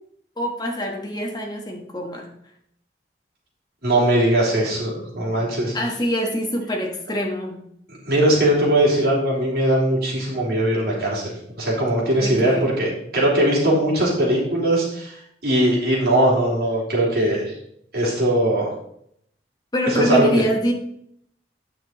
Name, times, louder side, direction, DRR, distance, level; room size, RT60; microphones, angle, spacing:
voice 1, 0.4-2.3 5.7-7.6 12.2-12.7 19.7-20.7, equal, 25° left, 1 dB, 1.3 m, -24 dB
voice 2, 3.8-5.7 8.0-12.9 13.1-15.1 15.4-17.5 17.9-18.7 19.9-20.3, right 1 dB, 60° right, -5 dB, 3.4 m, -20 dB
9.3 x 6.2 x 4.0 m, 0.71 s
head